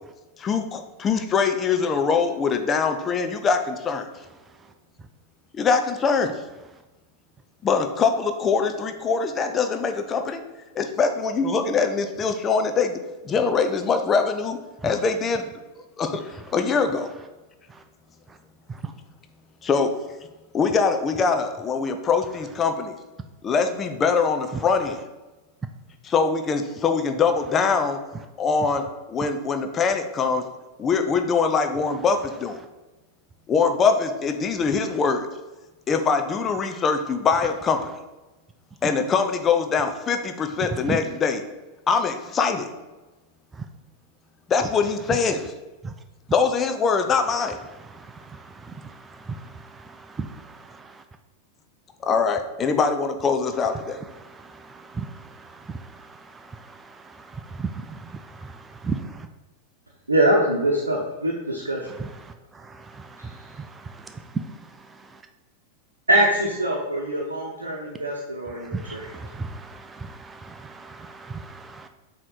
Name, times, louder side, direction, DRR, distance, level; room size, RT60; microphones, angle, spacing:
voice 1, 0.4-4.1 5.5-6.4 7.6-10.4 10.7-14.6 14.8-15.5 16.0-17.1 19.6-19.9 20.5-23.0 23.4-25.0 26.0-28.0 28.4-30.5 30.8-32.6 33.5-35.3 35.9-37.9 38.8-41.4 41.9-42.7 44.5-45.5 46.3-47.6 52.0-54.0, left 5 dB, 25° left, 7 dB, 0.6 m, -23 dB
voice 2, 60.1-62.0 63.2-63.3 66.1-69.1, right 1 dB, 80° right, -2 dB, 0.8 m, -23 dB
voice 3, 68.7-69.6 70.8-71.4, right 4 dB, 15° right, 7 dB, 0.4 m, -30 dB
7.4 x 3.1 x 4.1 m, 1.1 s
figure-of-eight pair, 90°, 0 cm